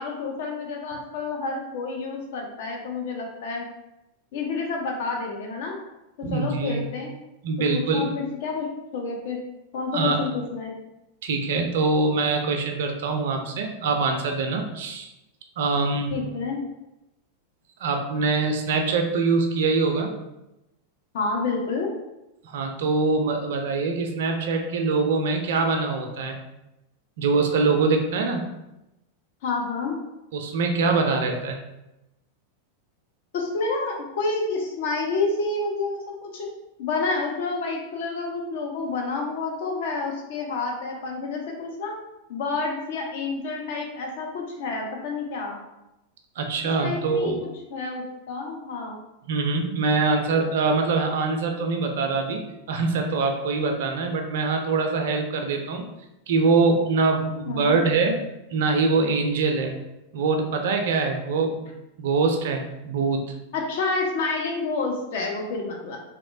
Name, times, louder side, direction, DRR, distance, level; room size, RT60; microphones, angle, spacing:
voice 1, 0.0-3.7 4.3-5.8 6.2-7.1 7.7-8.7 8.9-9.4 9.7-10.8 16.1-16.6 21.1-21.9 29.4-30.0 33.3-36.5 36.8-41.9 42.3-45.6 46.8-47.3 47.7-49.0 57.5-57.8 63.5-66.0, left 3 dB, 55° left, 1 dB, 0.7 m, -29 dB
voice 2, 6.2-6.9 7.4-8.1 9.9-10.2 11.2-15.1 15.6-16.1 17.8-20.1 22.4-26.4 27.2-28.5 30.3-31.6 46.4-47.4 49.3-55.9 56.3-58.2 58.5-59.8 60.1-63.2, right 4 dB, 55° right, 4 dB, 0.4 m, -24 dB
3.1 x 2.9 x 2.6 m, 0.93 s
figure-of-eight pair, 90°, 0 cm